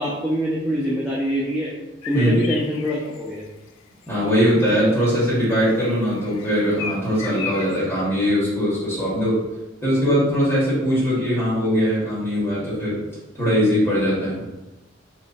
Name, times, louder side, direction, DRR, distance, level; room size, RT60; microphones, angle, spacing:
voice 1, 0.0-1.7 2.1-3.4, equal, 5° right, -5 dB, 0.4 m, -24 dB
sound 1, 2.0-3.3 4.0-4.1 4.5-7.8, left 7 dB, 90° left, 0.3 m, -35 dB
voice 2, 4.1-9.4 9.8-13.0 13.3-14.4, equal, 10° left, -10 dB, 1.4 m, -21 dB
3.1 x 2.2 x 3.9 m, 1.0 s
head